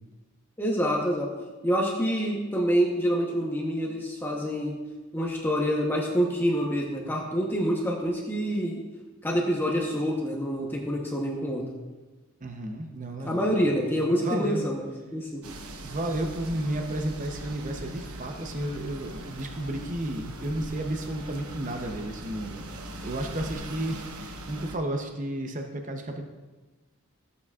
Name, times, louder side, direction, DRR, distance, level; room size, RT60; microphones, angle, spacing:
voice 1, 0.6-1.3 1.6-4.8 5.1-8.8 9.2-11.7 13.2-15.5, equal, 10° left, -2 dB, 0.8 m, -27 dB
voice 2, 12.4-13.7 14.2-14.6 15.8-26.2, right 1 dB, 35° right, 4 dB, 0.7 m, -32 dB
sound 1, 15.4-24.8, right 1 dB, 80° right, 1.0 m, -41 dB
14.0 x 8.2 x 2.4 m, 1.3 s
head